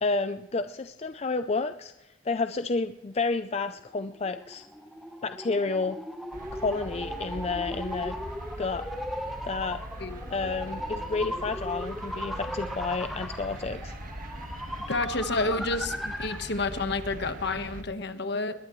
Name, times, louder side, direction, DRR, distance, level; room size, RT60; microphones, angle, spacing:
voice 1, 0.0-1.9 2.2-4.7 5.2-6.0 6.5-8.2 8.6-8.8 9.4-9.8 10.3-13.9, left 3 dB, 35° left, 10 dB, 0.5 m, -30 dB
sound 1, 3.8-16.5, equal, ahead, 1.0 m, -38 dB
sound 2, 6.3-17.8, right 1 dB, 45° right, 1.6 m, -41 dB
voice 2, 14.9-18.5, left 3 dB, 60° left, 9 dB, 1.3 m, -30 dB
21.0 x 19.0 x 3.1 m, 0.98 s
head